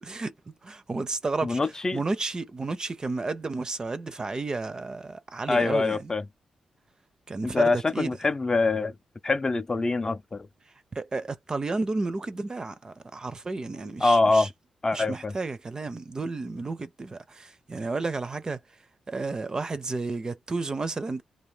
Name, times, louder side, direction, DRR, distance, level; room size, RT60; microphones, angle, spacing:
voice 1, 0.0-1.6 1.9-6.1 7.3-8.1 10.9-14.5 14.9-18.6 19.1-21.2, right 3 dB, 35° right, 0.5 m, -32 dB
voice 2, 1.4-2.0 5.5-6.2 7.5-8.9 9.2-10.5 14.0-14.5 14.8-15.3, left 3 dB, 30° left, 0.4 m, -24 dB
2.5 x 2.3 x 3.2 m
cardioid pair, 65°, 2 cm